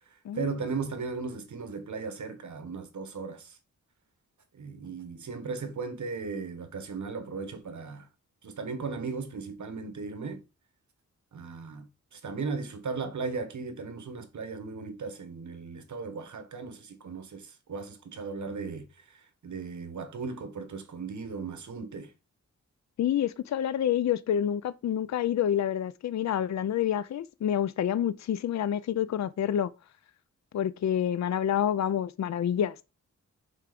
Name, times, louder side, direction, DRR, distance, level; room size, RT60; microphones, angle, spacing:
voice 1, 0.1-3.6 4.5-8.1 8.4-10.4 11.3-11.9 12.1-22.1, right 4 dB, 75° right, 1.4 m, -37 dB
voice 2, 23.0-29.7 30.5-32.8, left 10 dB, 65° left, 0.5 m, -28 dB
6.6 x 3.5 x 5.2 m
wide cardioid pair, 155°, 29 cm